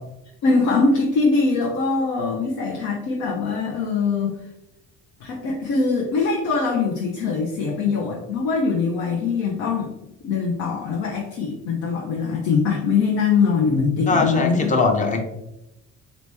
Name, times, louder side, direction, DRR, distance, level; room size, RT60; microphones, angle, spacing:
voice 1, 0.4-4.4 5.2-9.9 10.2-14.7, left 4 dB, 80° left, -1 dB, 0.8 m, -22 dB
voice 2, 14.1-15.2, left 3 dB, 25° left, 4 dB, 0.7 m, -20 dB
4.2 x 2.9 x 3.3 m, 0.87 s
cardioid pair, 130°, 29 cm